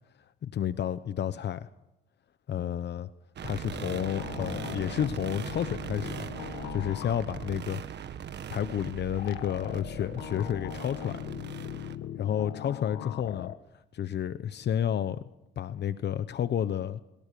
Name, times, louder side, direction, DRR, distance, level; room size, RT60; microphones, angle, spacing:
voice 1, 0.4-1.7 2.5-3.1 3.4-6.3 6.7-7.8 8.5-11.2 12.2-13.5 13.9-15.2 15.6-17.0, left 9 dB, 60° left, 13 dB, 1.0 m, -31 dB
sound 1, 3.4-12.0, right 8 dB, 60° right, 1.5 m, -40 dB
sound 2, 3.7-7.5 9.2-13.6, left 11 dB, 85° left, 1.4 m, -40 dB
23.0 x 22.0 x 6.9 m, 0.89 s
cardioid pair, 90°, 20 cm